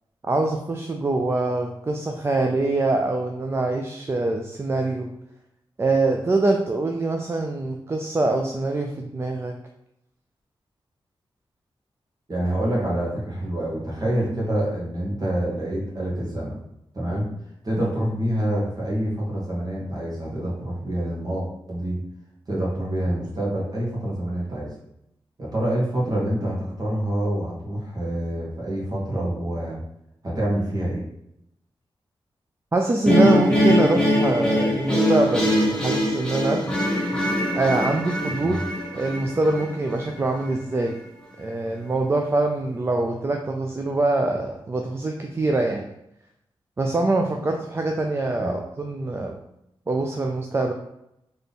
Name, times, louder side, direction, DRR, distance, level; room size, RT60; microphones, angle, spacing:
voice 1, 0.3-5.1 5.8-9.5 32.7-36.6 37.5-38.6 38.9-41.0 41.4-45.9 46.8-49.4 49.9-50.7, right 2 dB, 25° right, 2 dB, 0.4 m, -24 dB
voice 2, 12.3-16.6 16.9-17.3 17.6-22.0 22.5-24.7 25.4-29.8 30.2-31.0 38.3-38.7 48.4-48.5, right 1 dB, 45° right, -4 dB, 1.7 m, -26 dB
sound 1, 33.1-40.2, equal, 10° left, 1.0 m, -22 dB
3.6 x 3.4 x 4.1 m, 0.81 s
wide cardioid pair, 120°, 9 cm